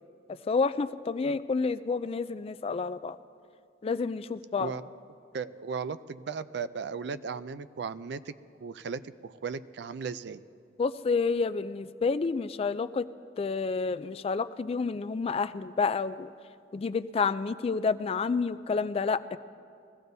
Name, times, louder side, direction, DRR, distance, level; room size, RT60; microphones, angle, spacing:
voice 1, 0.5-3.2 3.8-4.7 10.8-13.1 13.4-16.3 16.7-19.4, left 4 dB, 35° left, 14 dB, 0.3 m, -29 dB
voice 2, 4.6-4.9 5.3-8.3 8.6-10.4, right 5 dB, 65° right, 14 dB, 0.4 m, -36 dB
21.5 x 15.5 x 2.7 m, 2.4 s
head